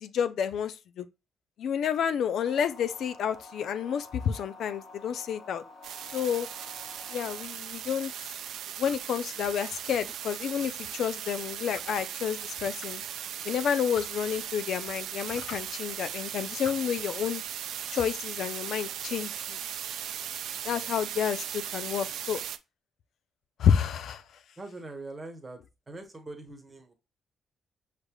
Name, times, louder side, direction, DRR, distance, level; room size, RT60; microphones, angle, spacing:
voice 1, 0.0-1.1 1.6-5.6 6.1-6.5 7.1-8.1 8.8-13.0 13.5-17.4 17.9-19.6 20.7-22.4 23.6-24.2, left 8 dB, 65° left, 0.4 m, -30 dB
sound 1, 2.4-7.4, left 3 dB, 45° left, 0.8 m, -49 dB
sound 2, 5.8-22.6, right 10 dB, 75° right, 0.5 m, -38 dB
voice 2, 24.6-25.6 25.9-26.9, right 2 dB, 15° right, 1.1 m, -42 dB
6.5 x 3.2 x 2.2 m
cardioid pair, 160°, 0 cm